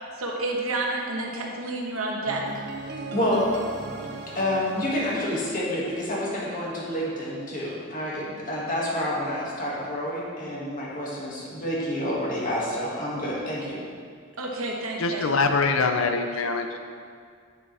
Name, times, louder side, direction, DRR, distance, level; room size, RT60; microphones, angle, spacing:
voice 1, 0.2-2.4 14.4-15.3, right 2 dB, 80° right, 0 dB, 1.2 m, -29 dB
sound 1, 2.3-6.3, right 2 dB, 50° right, 0.6 m, -39 dB
voice 2, 3.1-3.5 3.8-3.9 4.3-13.8, left 1 dB, 40° left, -6 dB, 2.0 m, -28 dB
voice 3, 15.0-16.8, left 4 dB, 70° left, 6 dB, 0.6 m, -24 dB
8.9 x 7.1 x 3.4 m, 2.1 s
head